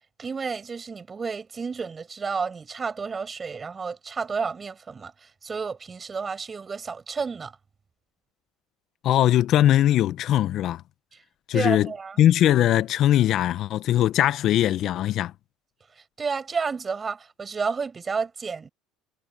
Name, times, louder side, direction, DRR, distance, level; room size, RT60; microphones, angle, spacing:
voice 1, 0.2-7.5 11.5-12.2 16.2-18.7, right 5 dB, 25° right, 6.9 m, -31 dB
voice 2, 9.0-10.8 11.5-11.9 12.2-15.3, left 12 dB, 55° left, 0.8 m, -20 dB
supercardioid pair, 90°, 0 cm